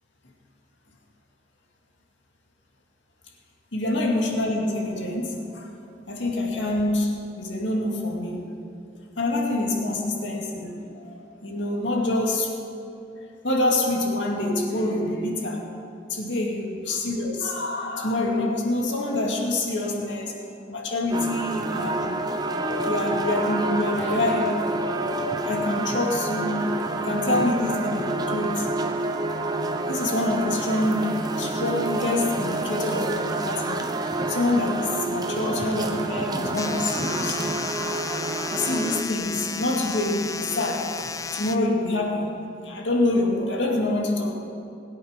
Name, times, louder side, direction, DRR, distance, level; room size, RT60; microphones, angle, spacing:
voice 1, 3.7-5.7 6.1-8.5 9.2-12.5 13.1-15.7 16.1-20.3 20.7-22.2 22.8-24.7 25.4-26.7 27.0-28.7 29.9-33.9 34.3-37.4 38.5-42.4 42.6-44.3, left 2 dB, 75° left, 0 dB, 2.2 m, -26 dB
sound 1, 21.1-39.0, right 2 dB, 20° right, 0.7 m, -28 dB
sound 2, 36.5-41.6, left 5 dB, 15° left, 0.3 m, -33 dB
20.5 x 8.8 x 5.2 m, 2.7 s
head